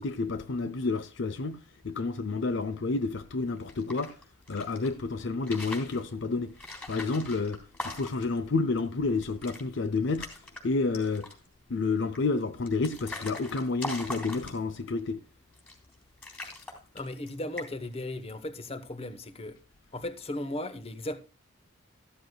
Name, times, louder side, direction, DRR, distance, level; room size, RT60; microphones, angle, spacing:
voice 1, 0.0-4.2 4.5-6.5 6.9-10.3 10.6-11.3 11.7-15.2, left 3 dB, 65° left, 0.6 m, -30 dB
sound 1, 3.6-4.9 5.3-6.0 6.6-8.4 8.8-8.9 9.1-9.6 9.9-10.6 10.9-11.5 12.1-14.9 15.5-15.9 16.2-17.3 17.6-17.9, left 2 dB, 10° left, 3.5 m, -41 dB
voice 2, 16.9-19.6 19.9-21.2, left 1 dB, 30° left, 1.0 m, -36 dB
13.5 x 13.0 x 2.2 m
head